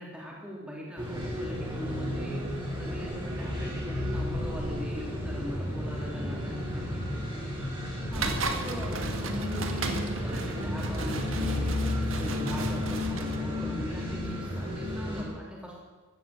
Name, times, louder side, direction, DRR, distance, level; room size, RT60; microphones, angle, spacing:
voice 1, 0.0-7.0 8.1-15.8, equal, 5° right, -3 dB, 3.4 m, -40 dB
sound 1, 1.0-15.2, left 1 dB, 20° right, 4.0 m, -32 dB
sound 2, 8.1-13.4, right 3 dB, 60° right, 1.8 m, -35 dB
16.0 x 12.0 x 7.4 m, 1.4 s
head